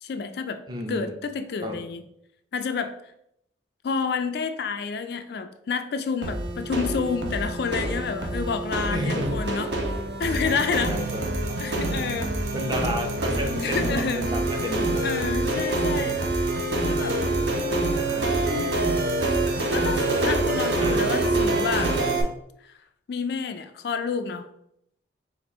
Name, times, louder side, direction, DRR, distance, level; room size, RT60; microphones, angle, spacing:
voice 1, 0.0-0.6 0.9-2.0 2.5-2.9 3.8-9.7 10.2-11.0 11.6-12.3 13.6-14.3 15.0-16.2 16.8-17.2 18.3-18.8 19.7-22.0 22.6-22.8 23.1-24.5, left 5 dB, 55° left, 8 dB, 0.3 m, -29 dB
voice 2, 0.7-1.1 1.6-1.8 8.9-9.4 10.4-11.6 12.5-15.0 18.0-18.4 20.8-21.0, equal, 20° right, 2 dB, 0.6 m, -32 dB
sound 1, 6.2-22.2, right 2 dB, 65° right, 0.8 m, -26 dB
4.3 x 2.5 x 4.2 m, 0.76 s
head